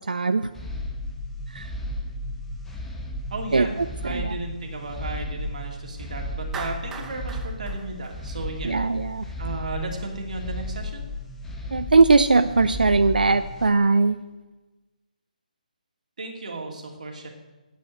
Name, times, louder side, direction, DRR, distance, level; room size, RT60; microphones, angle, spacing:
voice 1, 0.1-0.5 1.5-1.7 3.5-3.7 4.1-4.4 8.6-9.2 11.7-14.2, right 3 dB, 90° right, 10 dB, 0.5 m, -20 dB
sound 1, 0.5-13.7, left 1 dB, 5° left, 1.1 m, -34 dB
voice 2, 3.3-3.7 4.0-8.7 9.4-11.1 16.2-17.3, right 3 dB, 60° right, 1 dB, 2.6 m, -34 dB
Clapping, 6.5-8.8, right 5 dB, 10° right, 0.8 m, -39 dB
9.1 x 7.9 x 9.0 m, 1.2 s
hypercardioid pair, 160°, 5 cm